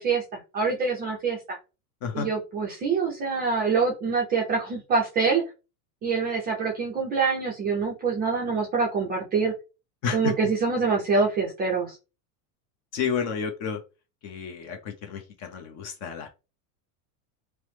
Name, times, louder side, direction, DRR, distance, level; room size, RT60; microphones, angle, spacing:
voice 1, 0.0-1.6 2.1-5.4 6.0-9.5 10.1-12.0, right 4 dB, 20° right, -2 dB, 0.4 m, -25 dB
voice 2, 12.9-13.8 14.2-16.3, left 6 dB, 35° left, 4 dB, 0.5 m, -31 dB
2.9 x 2.0 x 3.1 m, 0.30 s
supercardioid pair, 145°, 49 cm